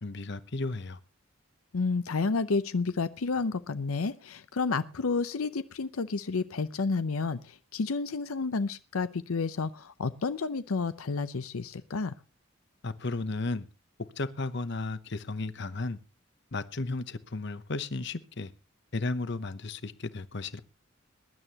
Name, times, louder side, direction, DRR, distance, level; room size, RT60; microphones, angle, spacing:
voice 1, 0.0-1.0 12.8-13.7 14.2-16.0 16.5-18.5 18.9-20.6, left 3 dB, 55° left, 0.9 m, -34 dB
voice 2, 1.7-12.1, left 4 dB, 90° left, 0.7 m, -30 dB
22.0 x 11.0 x 2.9 m
head